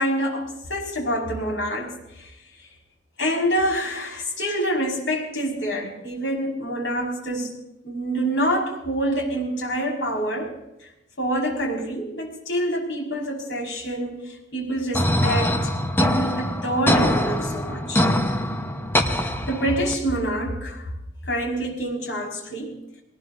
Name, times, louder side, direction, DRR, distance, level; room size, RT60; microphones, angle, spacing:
voice 1, 0.0-2.3 3.2-10.5 11.2-18.0 19.2-20.9 21.2-22.8, equal, 75° left, -1 dB, 5.2 m, -26 dB
sound 1, 14.9-19.9, left 1 dB, 10° left, 1.0 m, -23 dB
21.5 x 19.5 x 2.7 m, 0.88 s
head